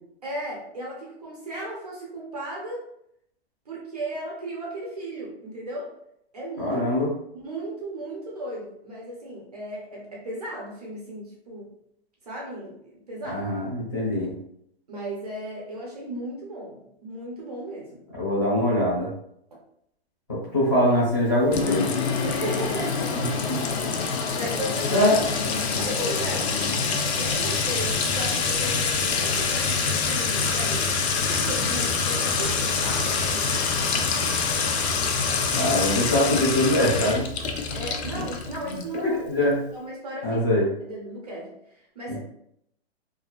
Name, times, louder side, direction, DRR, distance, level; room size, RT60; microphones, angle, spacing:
voice 1, 0.2-2.9 3.7-5.9 6.3-6.9 7.4-11.7 12.2-13.5 14.9-18.0 19.5-19.6 22.2-23.2 24.3-25.1 25.8-34.3 37.7-40.4 40.8-42.2, right 1 dB, 40° right, -3 dB, 0.5 m, -36 dB
voice 2, 6.6-7.1 13.3-14.3 18.2-19.1 20.3-21.9 23.1-23.6 24.2-24.3 24.9-25.3 35.5-37.3 38.9-39.6 40.2-40.7 42.1-42.2, left 1 dB, 20° left, -8 dB, 0.7 m, -23 dB
Sink (filling or washing) / Trickle dribble / Fill (with liquid), 21.5-39.0, left 5 dB, 80° left, 0.5 m, -25 dB
2.3 x 2.3 x 2.3 m, 0.74 s
hypercardioid pair, 180°, 32 cm